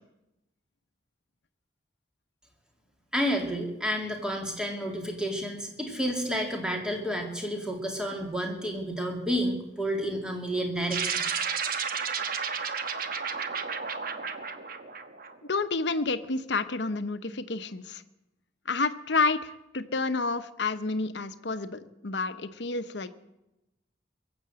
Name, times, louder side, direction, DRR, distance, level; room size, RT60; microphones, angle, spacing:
voice 1, 3.1-11.2, equal, 5° right, 1 dB, 2.3 m, -30 dB
sound 1, 10.9-15.6, right 6 dB, 55° right, 1.1 m, -32 dB
voice 2, 15.5-18.0 18.7-23.1, left 3 dB, 75° left, 11 dB, 0.9 m, -29 dB
22.0 x 8.0 x 7.7 m, 0.93 s
head